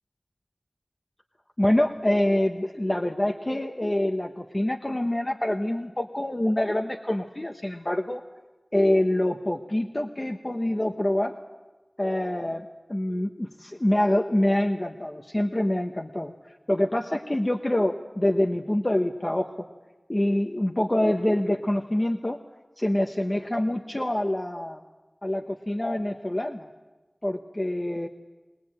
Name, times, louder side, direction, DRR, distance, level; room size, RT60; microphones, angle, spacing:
voice 1, 1.6-8.2 8.7-11.4 12.0-16.3 16.7-19.5 20.1-22.4 22.8-24.8 25.2-26.7 27.2-28.1, left 1 dB, 35° left, 4 dB, 1.1 m, -26 dB
22.0 x 19.0 x 8.8 m, 1.1 s
wide cardioid pair, 50°, 0 cm